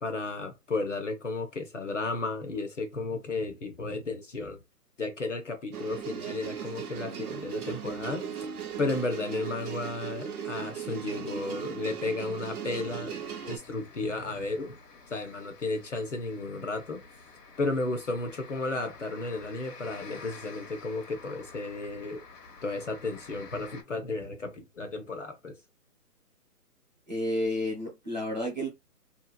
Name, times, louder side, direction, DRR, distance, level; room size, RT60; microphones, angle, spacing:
voice 1, 0.0-4.6 5.0-8.5 8.8-14.8 15.1-17.0 17.6-22.3 22.6-25.6, left 3 dB, 50° left, 0.6 m, -33 dB
sound 1, 5.7-13.6, right 7 dB, 65° right, 0.7 m, -38 dB
sound 2, 13.2-23.8, left 4 dB, 80° left, 0.9 m, -50 dB
voice 2, 27.1-28.7, left 1 dB, 30° right, 0.8 m, -31 dB
2.7 x 2.3 x 2.3 m
hypercardioid pair, 180°, 47 cm